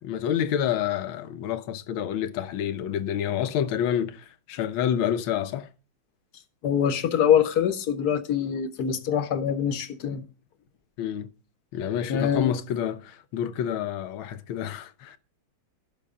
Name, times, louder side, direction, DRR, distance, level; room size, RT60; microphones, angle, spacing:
voice 1, 0.0-5.7 11.0-11.3 11.7-15.2, left 9 dB, 80° left, 1.7 m, -28 dB
voice 2, 6.6-10.2 12.1-12.5, left 8 dB, 60° left, 1.3 m, -24 dB
15.5 x 6.3 x 3.7 m
omnidirectional pair, 2.2 m